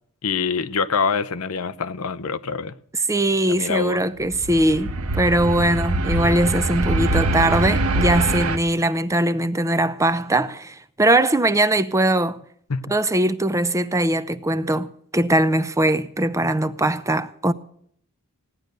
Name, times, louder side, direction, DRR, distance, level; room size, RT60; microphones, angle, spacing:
voice 1, 0.2-2.7 3.5-4.0 12.7-12.8, left 5 dB, 75° left, 0.8 m, -25 dB
voice 2, 3.1-12.4 12.9-14.9 15.1-17.5, right 1 dB, 15° right, 0.7 m, -21 dB
sound 1, 4.2-8.6, right 2 dB, 75° right, 1.2 m, -23 dB
16.5 x 10.5 x 6.7 m
head